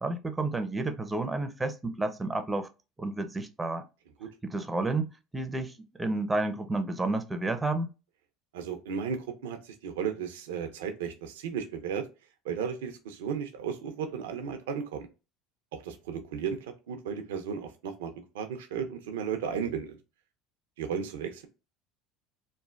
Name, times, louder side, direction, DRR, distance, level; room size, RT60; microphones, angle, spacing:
voice 1, 0.0-2.7 3.0-3.8 4.4-5.7 6.0-7.9, right 2 dB, 15° right, 0.5 m, -31 dB
voice 2, 8.5-12.1 12.4-15.1 15.7-20.0 20.8-21.5, right 7 dB, 85° right, 0.5 m, -34 dB
3.1 x 2.1 x 2.4 m
hypercardioid pair, 90°, 0 cm